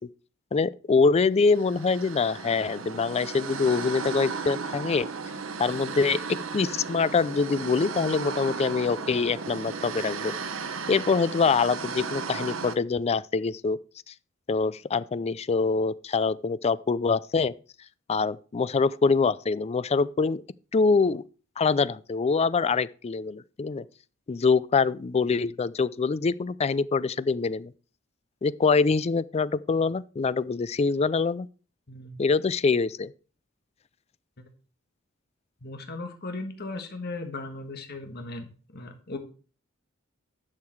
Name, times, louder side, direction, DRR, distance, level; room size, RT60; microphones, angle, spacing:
voice 1, 0.5-5.1 5.6-6.2 6.5-10.3 10.9-13.8 14.1-14.2 14.5-17.5 18.1-20.4 20.7-21.2 21.6-23.8 24.3-27.7 28.4-31.5 32.2-33.1, left 4 dB, 30° left, 0.4 m, -24 dB
sound 1, 1.5-12.8, right 5 dB, 70° right, 0.9 m, -35 dB
voice 2, 31.9-32.2 35.6-39.2, left 2 dB, 50° left, 1.6 m, -37 dB
10.5 x 6.7 x 4.6 m
head